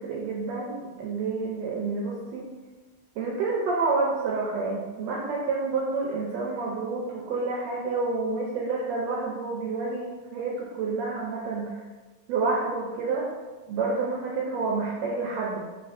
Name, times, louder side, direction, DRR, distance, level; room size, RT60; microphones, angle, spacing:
voice 1, 0.0-2.4 3.2-11.7 12.3-13.3 13.7-15.6, right 3 dB, 80° right, -2 dB, 1.6 m, -29 dB
4.3 x 4.1 x 2.5 m, 1.2 s
omnidirectional pair, 3.4 m